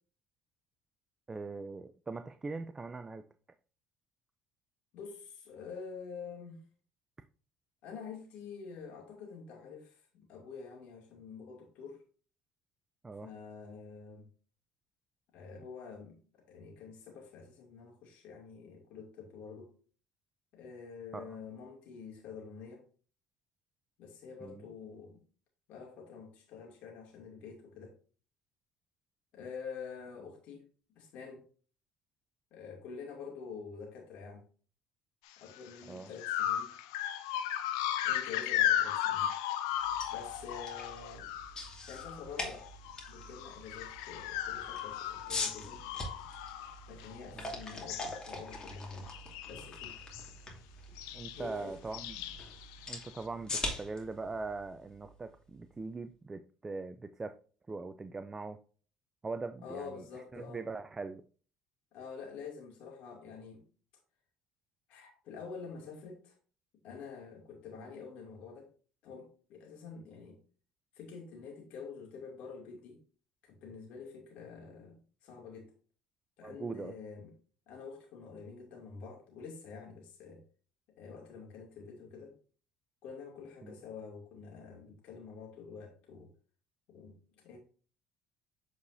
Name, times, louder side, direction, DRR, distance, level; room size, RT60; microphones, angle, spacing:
voice 1, 1.3-3.2 13.0-13.3 21.1-21.4 24.4-24.6 35.9-36.1 47.3-47.5 51.1-52.2 52.9-57.3 57.7-58.6 59.2-60.0 60.3-61.2 67.7-67.9 76.4-76.9 83.6-83.7, right 3 dB, 25° right, 10 dB, 0.5 m, -41 dB
voice 2, 4.9-6.6 7.8-12.0 13.2-14.3 15.3-19.7 20.5-22.8 24.0-25.2 25.7-28.0 29.3-30.7 30.9-31.4 32.5-34.4 35.4-36.8 38.0-39.3 40.1-41.3 41.9-42.7 43.1-45.8 46.9-49.1 49.5-50.0 51.3-51.7 59.6-60.6 61.9-63.7 64.9-66.3 66.8-68.7 69.0-70.4 70.9-73.0 73.4-75.7 76.4-77.3 77.7-80.4 81.0-82.4 83.0-86.3 86.9-87.6, left 5 dB, 70° left, 0 dB, 2.5 m, -47 dB
sound 1, 35.5-35.7 36.2-42.3 42.6-47.4 47.7-48.2 48.5-48.8 49.1-50.3 51.0-51.5 51.9-53.2, left 11 dB, 85° left, 0.6 m, -36 dB
sound 2, 39.8-55.7, left 2 dB, 30° left, 2.4 m, -44 dB
8.3 x 4.8 x 2.7 m, 0.40 s
supercardioid pair, 75°, 2 cm